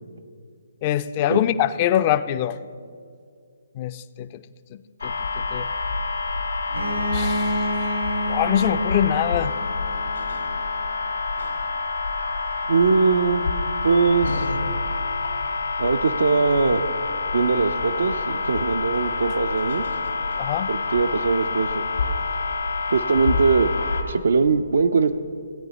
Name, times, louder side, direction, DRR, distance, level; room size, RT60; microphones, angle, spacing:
voice 1, 0.8-2.6 3.8-4.3 5.0-5.1 5.5-5.7 7.1-7.5 8.3-9.5 20.4-20.7, left 11 dB, 30° left, 13 dB, 0.4 m, -23 dB
sound 1, 5.0-24.0, left 4 dB, 80° left, 1.7 m, -27 dB
Bowed string instrument, 6.7-10.4, equal, 90° right, 3.4 m, -29 dB
voice 2, 12.7-13.4 13.8-14.5 15.8-16.8 17.3-19.9 20.7-21.8 22.9-23.7 24.1-25.1, right 4 dB, 75° right, 7 dB, 0.5 m, -21 dB
16.0 x 9.1 x 4.0 m, 2.2 s
figure-of-eight pair, 145°, 0 cm